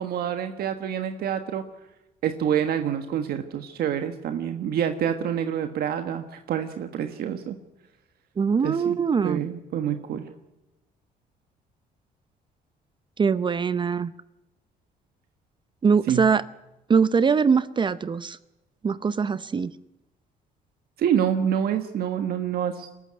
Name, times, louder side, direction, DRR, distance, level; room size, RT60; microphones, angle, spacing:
voice 1, 0.0-1.6 2.2-7.6 8.6-9.0 9.2-10.3 16.1-16.3 21.0-23.0, right 9 dB, 65° right, 7 dB, 1.4 m, -27 dB
voice 2, 8.4-9.4 13.2-14.1 15.8-16.4 16.9-18.4 18.8-19.7, right 5 dB, 30° right, 15 dB, 0.6 m, -22 dB
23.0 x 13.5 x 9.7 m, 1.0 s
cardioid pair, 110°, 17 cm